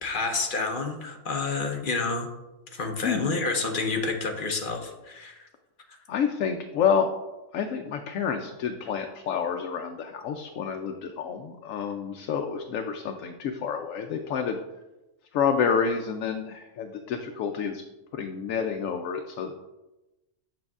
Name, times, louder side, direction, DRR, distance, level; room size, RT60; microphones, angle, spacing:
voice 1, 0.0-2.3 2.7-5.5, left 3 dB, 45° left, 3 dB, 0.9 m, -29 dB
voice 2, 3.0-3.4 6.1-7.1 7.5-14.6 15.3-17.8 18.1-19.5, left 6 dB, 85° left, 4 dB, 1.0 m, -28 dB
7.6 x 7.1 x 2.4 m, 1.0 s
omnidirectional pair, 1.3 m